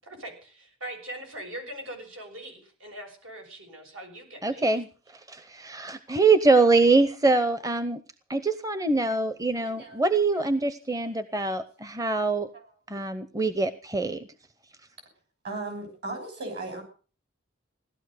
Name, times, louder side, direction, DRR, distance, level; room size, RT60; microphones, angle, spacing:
voice 1, 0.0-4.7, right 1 dB, 75° right, 3 dB, 7.0 m, -41 dB
voice 2, 4.4-4.9 5.3-8.0 8.3-12.5 12.9-14.2, right 3 dB, 15° right, 11 dB, 0.7 m, -24 dB
voice 3, 9.6-10.1 10.3-10.5 12.0-12.1 12.5-12.7 15.4-16.8, right 2 dB, 55° right, 5 dB, 7.1 m, -37 dB
17.0 x 12.5 x 6.6 m, 0.40 s
head